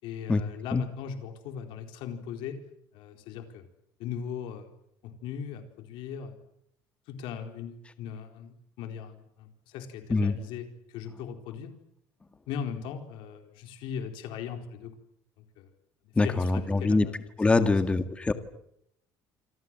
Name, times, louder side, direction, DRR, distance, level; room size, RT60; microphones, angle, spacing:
voice 1, 0.0-2.6 2.9-3.6 4.0-4.7 5.0-6.4 7.1-11.7 12.5-14.9 15.6-15.7 16.2-17.2 17.6-17.8, left 7 dB, 75° left, 5 dB, 4.3 m, -39 dB
voice 2, 16.2-17.1 17.4-18.3, left 3 dB, 15° left, 9 dB, 1.9 m, -24 dB
27.5 x 26.5 x 7.7 m, 0.77 s
cardioid pair, 150°, 8 cm